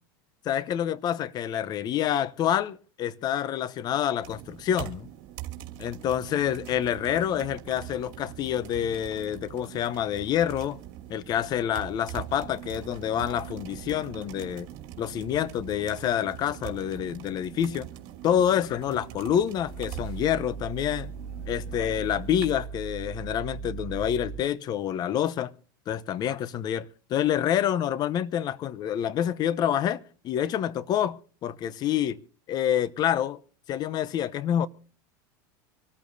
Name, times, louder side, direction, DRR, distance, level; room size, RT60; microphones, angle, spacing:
voice 1, 0.4-5.1 5.8-10.8 11.1-14.7 15.0-17.9 18.2-21.1 21.5-25.5 25.9-32.2 32.5-33.4 33.7-34.7, left 10 dB, 40° left, 0.8 m, -27 dB
sound 1, 4.2-22.6, right 13 dB, 60° right, 2.6 m, -43 dB
Growling, 19.5-24.5, right 6 dB, 5° left, 1.8 m, -38 dB
25.5 x 13.5 x 2.7 m
supercardioid pair, 115°, 10 cm